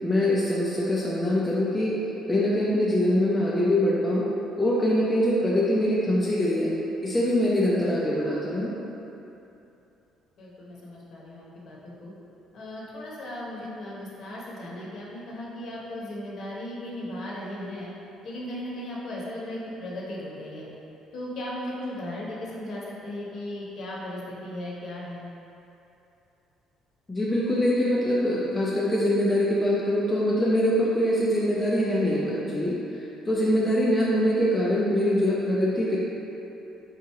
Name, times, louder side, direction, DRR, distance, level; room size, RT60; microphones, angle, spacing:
voice 1, 0.0-2.0 2.3-4.2 4.6-6.7 7.0-8.7 27.1-36.0, left 1 dB, 10° left, -7 dB, 0.4 m, -23 dB
voice 2, 10.4-12.1 12.5-17.9 18.2-20.7 21.1-25.3, left 1 dB, 45° left, -5 dB, 0.9 m, -36 dB
3.8 x 2.9 x 4.6 m, 2.9 s
cardioid pair, 165°, 0 cm